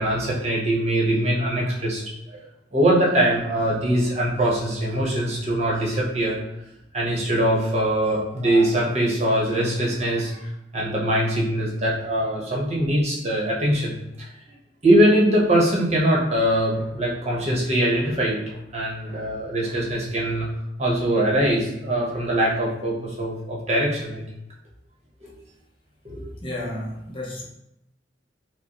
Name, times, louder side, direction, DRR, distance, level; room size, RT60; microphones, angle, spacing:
voice 1, 0.0-2.0 2.3-2.4 2.7-6.4 6.9-14.3 14.8-20.5 20.8-24.2 25.2-25.3 26.0-26.3, right 1 dB, 35° right, -3 dB, 0.9 m, -22 dB
voice 2, 26.4-27.4, left 1 dB, 30° left, -2 dB, 0.6 m, -32 dB
5.2 x 2.1 x 2.9 m, 0.85 s
head